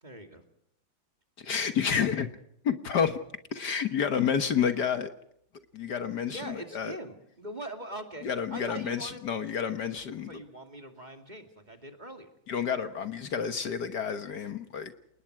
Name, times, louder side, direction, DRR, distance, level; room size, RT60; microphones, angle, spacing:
voice 1, 0.0-0.4 6.2-9.2 10.2-12.3, right 1 dB, 20° right, 5 dB, 2.5 m, -42 dB
voice 2, 1.4-2.3 2.6-3.2 3.5-5.1 5.7-7.0 8.2-10.4 12.5-14.9, left 7 dB, 60° left, 9 dB, 1.7 m, -29 dB
29.0 x 19.5 x 4.7 m, 0.73 s
omnidirectional pair, 2.1 m